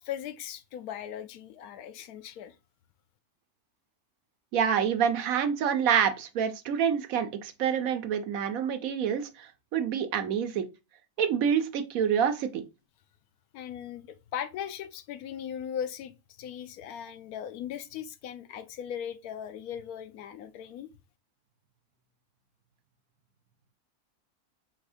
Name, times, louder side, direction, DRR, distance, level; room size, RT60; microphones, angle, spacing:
voice 1, 0.0-2.6 13.5-20.9, left 9 dB, 80° left, 1.0 m, -38 dB
voice 2, 4.5-10.6 11.2-12.6, right 8 dB, 70° right, 1.1 m, -27 dB
4.1 x 2.6 x 4.8 m
omnidirectional pair, 1.6 m